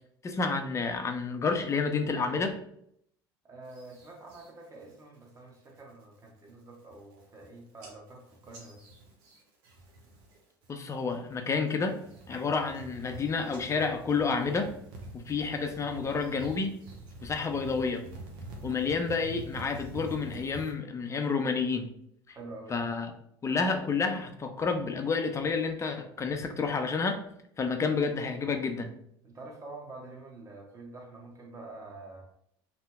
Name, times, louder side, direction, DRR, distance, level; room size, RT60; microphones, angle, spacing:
voice 1, 0.2-2.6 10.7-12.0 12.3-14.7 15.1-16.8 17.2-18.0 18.6-21.9 22.3-22.4 22.7-23.1 23.4-27.2 27.6-28.9, left 4 dB, 25° left, 5 dB, 0.5 m, -30 dB
voice 2, 3.4-8.8 22.3-22.9 29.2-32.2, right 2 dB, 25° right, 0 dB, 1.0 m, -47 dB
sound 1, 3.7-4.5 4.9-5.3 5.7-6.0 6.5-6.6 6.8-7.5 7.8-10.4 10.6-11.2 11.7-20.7, right 2 dB, 70° right, 0.8 m, -46 dB
2.7 x 2.1 x 3.5 m, 0.72 s
hypercardioid pair, 75°, 12 cm